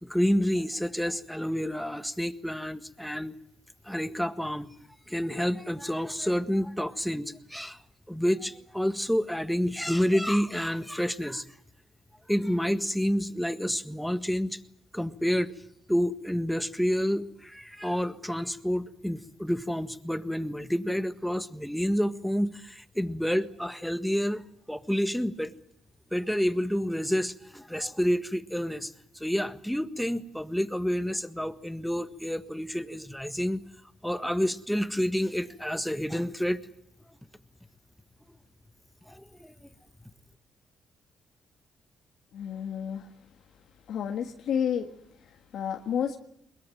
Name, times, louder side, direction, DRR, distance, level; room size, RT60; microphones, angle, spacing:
voice 1, 0.0-3.3 3.8-4.7 5.1-7.8 8.1-11.4 12.3-14.6 14.9-15.5 15.9-25.5 26.1-33.6 34.0-36.6 39.1-39.7, equal, ahead, 11 dB, 1.6 m, -29 dB
voice 2, 42.3-43.1 43.9-44.9 45.2-46.2, left 8 dB, 70° left, 4 dB, 1.6 m, -31 dB
22.0 x 21.5 x 9.2 m, 0.73 s
cardioid pair, 90°, 0 cm